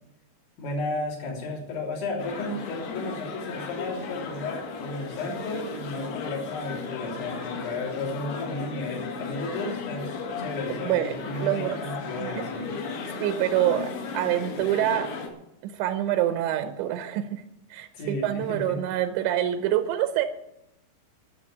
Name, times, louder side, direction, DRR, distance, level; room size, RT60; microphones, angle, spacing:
voice 1, 0.6-10.1 10.4-12.7 17.9-18.8, left 2 dB, 80° left, -3 dB, 5.8 m, -33 dB
sound 1, 2.2-15.3, left 4 dB, 60° left, 3.7 m, -35 dB
voice 2, 10.8-11.8 12.2-12.3 13.2-15.2 15.6-17.4 17.7-20.3, right 12 dB, 85° right, 8 dB, 3.0 m, -26 dB
13.5 x 7.4 x 8.5 m, 0.87 s
omnidirectional pair, 5.3 m